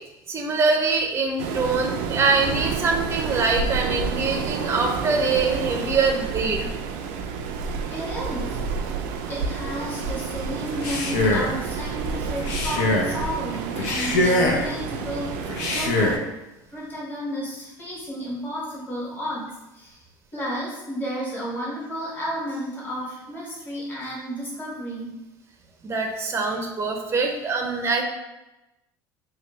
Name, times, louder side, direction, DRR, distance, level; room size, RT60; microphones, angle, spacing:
voice 1, 0.3-6.7 25.8-28.0, right 4 dB, 25° right, 2 dB, 0.6 m, -24 dB
Waves surf, 1.4-16.2, right 5 dB, 70° right, 0.4 m, -30 dB
voice 2, 7.9-8.9 9.3-16.2 16.7-20.0 20.3-25.1, equal, 20° left, -6 dB, 1.4 m, -32 dB
Male speech man speaking, 10.7-11.6 12.4-13.2 13.8-14.7 15.5-16.3, left 2 dB, 70° left, 0.6 m, -23 dB
3.2 x 2.3 x 3.1 m, 0.99 s
hypercardioid pair, 80°, 11 cm